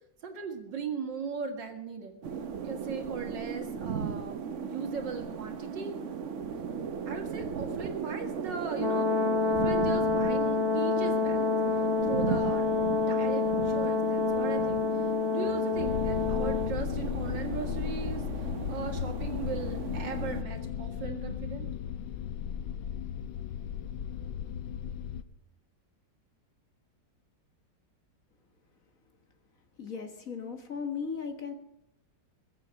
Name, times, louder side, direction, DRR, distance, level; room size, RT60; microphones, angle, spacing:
voice 1, 0.2-2.2 2.6-6.0 7.1-9.2 9.4-11.6 12.0-15.0 15.3-21.7, right 5 dB, 75° right, 4 dB, 2.5 m, -38 dB
sound 1, 2.2-20.4, right 6 dB, 55° right, 1.0 m, -37 dB
Brass instrument, 8.8-16.7, left 4 dB, 20° left, 0.8 m, -28 dB
sound 2, 15.8-25.2, left 9 dB, 85° left, 1.4 m, -35 dB
voice 2, 29.8-31.5, left 6 dB, 50° left, 6 dB, 1.7 m, -36 dB
22.0 x 7.7 x 6.4 m, 0.81 s
omnidirectional pair, 2.0 m